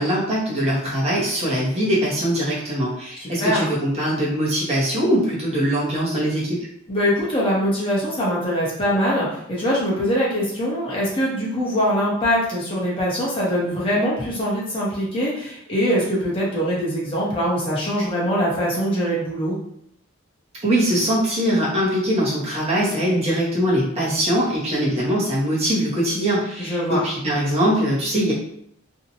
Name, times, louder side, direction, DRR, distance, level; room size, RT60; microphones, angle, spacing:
voice 1, 0.0-6.7 20.6-28.3, equal, 30° right, -6 dB, 0.6 m, -22 dB
voice 2, 3.1-3.7 6.9-19.6 26.6-27.0, equal, 25° left, -6 dB, 0.7 m, -23 dB
2.6 x 2.1 x 2.8 m, 0.70 s
head